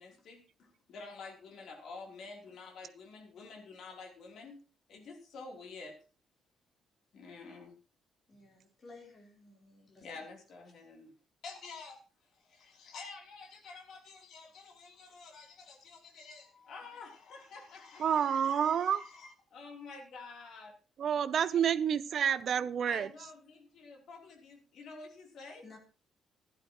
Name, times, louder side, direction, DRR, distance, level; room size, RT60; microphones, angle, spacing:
voice 1, 0.0-4.6 4.9-6.0 7.1-7.8 10.0-11.1 11.4-12.0 12.3-20.8 21.5-21.6 22.9-25.7, left 4 dB, 60° left, 1 dB, 3.3 m, -49 dB
voice 2, 8.3-10.1 25.6-25.8, left 3 dB, 30° left, 1 dB, 3.8 m, -55 dB
voice 3, 18.0-19.0 21.0-23.1, right 8 dB, 45° right, 15 dB, 0.6 m, -29 dB
16.0 x 11.5 x 3.0 m, 0.33 s
cardioid pair, 175°, 0 cm